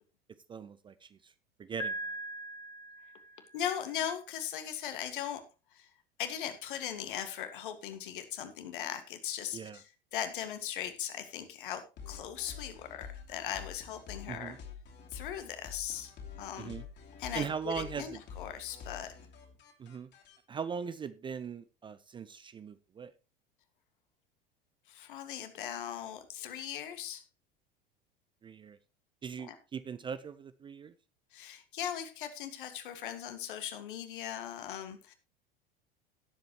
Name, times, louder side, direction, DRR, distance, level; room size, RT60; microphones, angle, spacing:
voice 1, 0.5-1.3 1.6-2.1 9.5-9.8 14.3-14.6 16.6-16.8 17.3-18.2 19.8-20.1 20.5-23.1 28.4-28.8 29.2-30.9, right 6 dB, 15° right, 14 dB, 0.5 m, -40 dB
Piano, 1.8-3.7, right 1 dB, 10° left, 2.3 m, -40 dB
voice 2, 3.5-5.4 5.7-5.9 6.2-14.6 15.1-16.1 16.4-16.7 17.2-19.1 24.9-27.2 29.5-29.6 31.3-35.1, left 10 dB, 60° left, 9 dB, 1.9 m, -39 dB
sound 1, 12.0-20.4, left 6 dB, 35° left, 3.1 m, -48 dB
17.5 x 7.8 x 3.1 m, 0.29 s
figure-of-eight pair, 80°, 29 cm